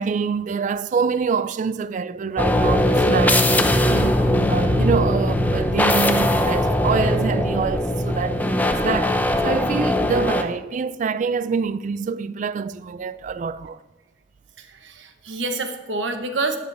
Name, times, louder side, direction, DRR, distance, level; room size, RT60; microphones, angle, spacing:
voice 1, 0.0-13.8, right 5 dB, 45° right, 0.3 m, -26 dB
sound 1, 2.4-10.4, left 1 dB, 10° left, 0.6 m, -20 dB
voice 2, 14.6-16.6, right 3 dB, 85° right, 1.0 m, -27 dB
12.0 x 8.9 x 3.4 m
head